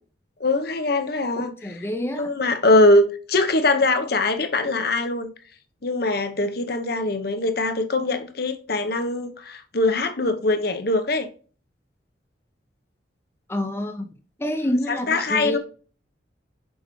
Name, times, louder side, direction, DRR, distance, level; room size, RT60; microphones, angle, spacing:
voice 1, 0.4-1.7 2.1-5.3 5.8-11.3 14.9-15.6, left 2 dB, 55° left, 0.9 m, -22 dB
voice 2, 1.6-2.3 13.5-14.1 14.4-15.6, left 1 dB, 15° left, 0.7 m, -27 dB
6.4 x 4.8 x 3.1 m
head